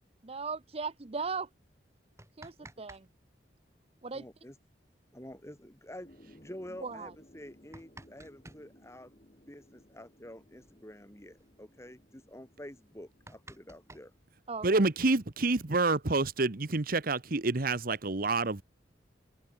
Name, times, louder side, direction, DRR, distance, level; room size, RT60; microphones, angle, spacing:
voice 1, 0.2-1.5 2.4-3.1 4.0-4.3 6.8-7.1 14.5-14.8, right 4 dB, 35° right, 0.7 m, -37 dB
Knocking Then Pounding on Wood Screen Door, 2.0-3.1 3.3-3.4 5.2-5.3 5.6-5.7 6.3-6.5 7.3-8.7 10.2-10.3 10.6-10.8 11.1-11.5 12.0-12.1 12.5-12.6 12.9-14.8 15.7-16.5, right 2 dB, 15° right, 4.7 m, -53 dB
voice 2, 4.1-4.5 5.1-9.1 9.5-14.1, left 1 dB, 15° left, 4.9 m, -48 dB
sound 1, 6.0-14.2, equal, 35° left, 4.3 m, -60 dB
voice 3, 14.6-18.6, right 3 dB, 55° right, 1.2 m, -28 dB
head